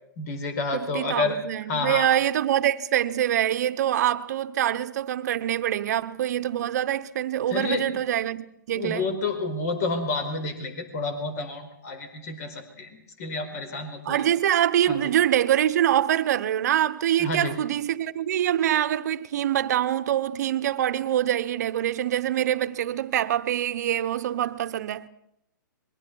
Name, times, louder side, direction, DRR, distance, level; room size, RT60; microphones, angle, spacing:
voice 1, 0.2-1.4 1.7-2.1 7.5-8.0 8.7-14.2 14.9-15.0 17.2-17.6, left 3 dB, 45° left, 4.6 m, -30 dB
voice 2, 0.7-9.1 14.0-25.1, right 11 dB, 50° right, 1.0 m, -25 dB
27.5 x 22.0 x 4.7 m
hypercardioid pair, 140°, 11 cm